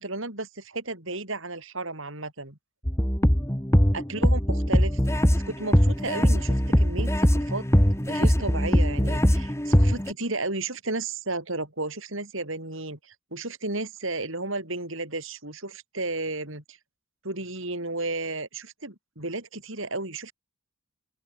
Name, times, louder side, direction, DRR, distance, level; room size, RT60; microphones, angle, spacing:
voice 1, 0.0-2.6 3.9-5.0 5.3-7.7 8.1-16.8 17.2-20.3, right 2 dB, 60° right, 5.5 m, -33 dB
sound 1, 2.9-10.1, equal, 10° left, 2.1 m, -21 dB
open air
head